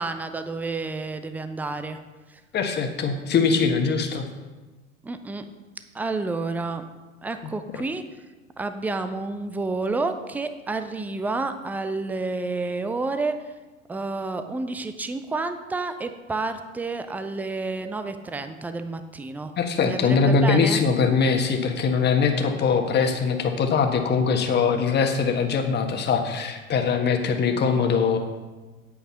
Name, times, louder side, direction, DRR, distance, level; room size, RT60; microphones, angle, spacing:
voice 1, 0.0-2.0 5.0-5.5 5.9-6.8 7.2-8.0 8.6-13.4 13.9-19.5 19.9-20.8, right 3 dB, 5° right, 9 dB, 0.5 m, -30 dB
voice 2, 2.5-4.3 19.6-28.2, left 5 dB, 25° left, 4 dB, 1.5 m, -22 dB
8.7 x 8.7 x 5.6 m, 1.2 s
figure-of-eight pair, 95°, 41 cm